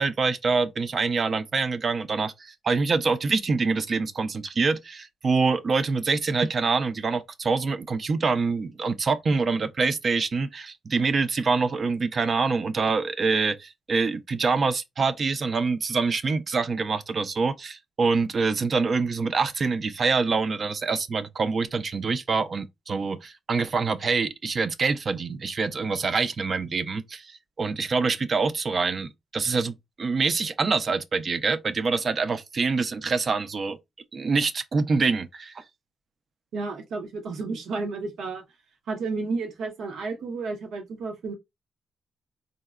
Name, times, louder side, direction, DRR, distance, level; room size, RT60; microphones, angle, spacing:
voice 1, 0.0-27.3 27.6-33.8 34.1-35.6, right 4 dB, 45° right, 0.4 m, -25 dB
voice 2, 36.5-38.4 38.9-41.3, right 3 dB, 80° right, 0.7 m, -32 dB
3.7 x 2.1 x 2.3 m
cardioid pair, 110°, 0 cm